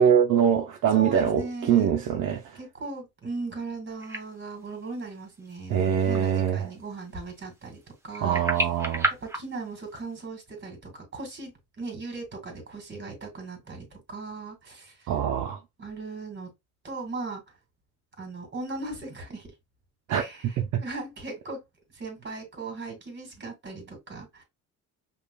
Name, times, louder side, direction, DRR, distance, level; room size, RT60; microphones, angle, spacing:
voice 1, 0.0-2.6 5.7-6.7 8.2-9.1 15.1-15.6 20.1-20.8, right 8 dB, 60° right, 0.6 m, -23 dB
voice 2, 0.9-1.9 2.6-7.8 8.0-8.4 9.2-14.9 15.8-16.5 16.8-17.4 18.2-19.5 20.1-20.5 20.8-21.6 21.9-24.4, right 3 dB, 30° right, 2.0 m, -38 dB
sound 1, 4.0-10.2, right 1 dB, 10° right, 0.8 m, -35 dB
5.3 x 2.4 x 2.2 m
cardioid pair, 115°, 34 cm